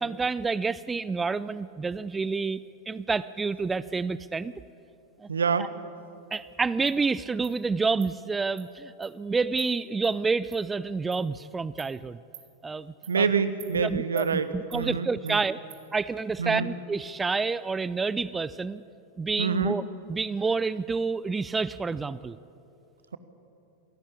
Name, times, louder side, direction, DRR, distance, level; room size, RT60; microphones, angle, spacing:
voice 1, 0.0-2.6 2.9-4.5 5.2-5.3 5.6-5.7 6.3-12.2 12.6-13.3 13.8-15.6 15.9-18.8 19.2-19.8 20.1-22.4, right 4 dB, 15° right, 17 dB, 0.5 m, -29 dB
voice 2, 5.3-5.7 13.1-15.4 16.4-16.7 19.4-19.8, right 5 dB, 70° right, 13 dB, 1.3 m, -26 dB
Insect, 6.3-6.4 6.9-7.0 7.4-7.6 8.0-8.1 8.6-8.7 9.0-9.1 9.6-9.7 10.0-10.1 10.5-10.6 11.1-11.2 11.8-11.9 12.3-12.5 13.0-13.2 13.6-13.7 14.2-14.3 14.7-14.8 15.3-15.4 15.7-15.8, right 12 dB, 55° right, 3.6 m, -47 dB
27.0 x 17.5 x 8.6 m, 2.7 s
figure-of-eight pair, 90°, 0 cm